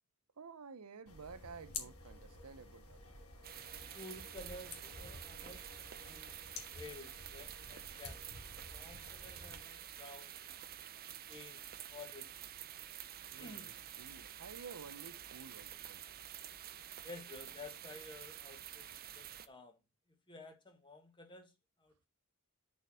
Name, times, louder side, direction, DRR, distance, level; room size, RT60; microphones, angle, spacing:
voice 1, 0.4-3.0 13.3-16.0, right 5 dB, 90° right, 0.7 m, -52 dB
sound 1, 1.1-9.6, left 4 dB, 75° left, 1.9 m, -51 dB
sound 2, 3.4-19.5, right 11 dB, 45° right, 0.6 m, -49 dB
voice 2, 3.9-5.6 6.0-6.4 6.7-8.2 8.7-10.3 11.3-12.3 13.3-13.7 17.0-18.9 19.1-19.8 20.3-21.5 21.8-22.1, left 2 dB, 20° left, 1.6 m, -52 dB
6.8 x 4.5 x 6.2 m
head